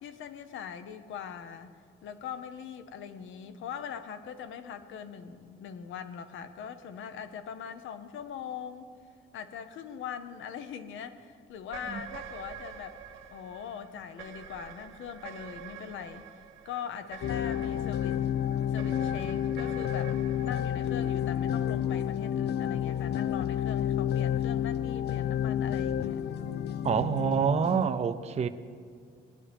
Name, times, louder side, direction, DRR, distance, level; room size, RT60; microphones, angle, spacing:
voice 1, 0.0-1.8 2.0-8.9 9.3-13.0 13.3-16.3 16.6-18.2 18.7-20.2 20.4-26.2, left 8 dB, 80° left, 10 dB, 0.8 m, -41 dB
sound 1, 11.6-22.1, right 8 dB, 90° right, 0.8 m, -47 dB
sound 2, 17.2-27.9, left 10 dB, 55° left, 0.5 m, -30 dB
voice 2, 26.8-28.5, right 7 dB, 35° right, 10 dB, 0.5 m, -27 dB
19.0 x 9.9 x 3.5 m, 2.2 s
cardioid pair, 90°, 20 cm